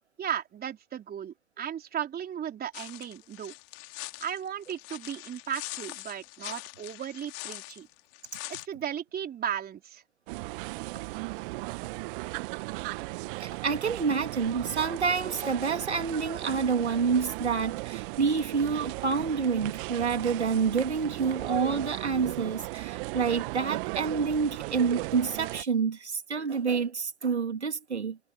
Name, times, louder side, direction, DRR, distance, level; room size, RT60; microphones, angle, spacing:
voice 1, 0.2-3.5 4.2-7.9 8.5-10.0, right 9 dB, 30° right, 3.8 m, -35 dB
sound 1, 2.7-8.7, left 35 dB, 50° left, 2.6 m, -42 dB
sound 2, 10.3-25.6, right 24 dB, 55° right, 1.4 m, -36 dB
voice 2, 13.4-28.2, right 5 dB, 85° right, 2.1 m, -28 dB
figure-of-eight pair, 85°, 33 cm